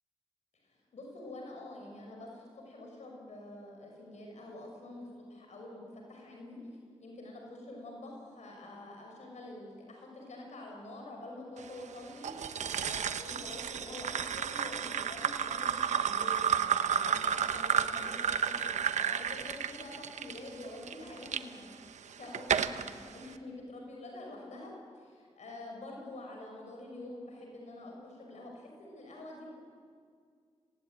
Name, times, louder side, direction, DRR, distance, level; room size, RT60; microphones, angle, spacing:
voice 1, 0.5-6.6 7.0-21.7 22.2-29.5, left 1 dB, 80° left, 0 dB, 5.8 m, -47 dB
sound 1, 12.2-21.4 22.0-22.9, right 8 dB, 90° right, 0.9 m, -32 dB
26.0 x 19.0 x 9.3 m, 2.1 s
cardioid pair, 45°, 12 cm